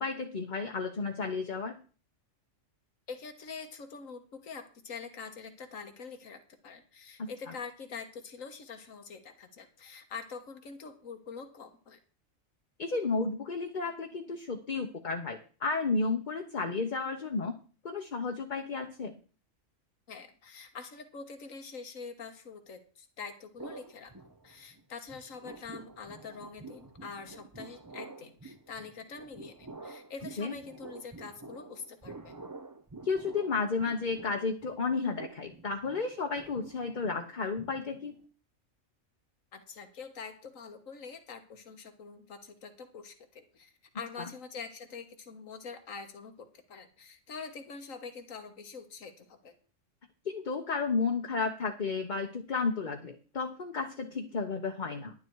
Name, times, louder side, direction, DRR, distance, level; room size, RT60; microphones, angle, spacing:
voice 1, 0.0-1.8 7.2-7.3 12.8-17.5 17.8-19.1 30.4-30.5 33.0-38.1 44.2-44.3 50.2-55.1, left 4 dB, 40° left, 3 dB, 1.1 m, -32 dB
voice 2, 3.1-12.0 20.1-32.4 39.5-49.5, left 5 dB, 80° left, 7 dB, 1.8 m, -45 dB
sound 1, 23.6-24.8 25.1-38.2, right 3 dB, 20° right, 0.7 m, -48 dB
11.0 x 9.7 x 4.7 m, 0.38 s
omnidirectional pair, 1.4 m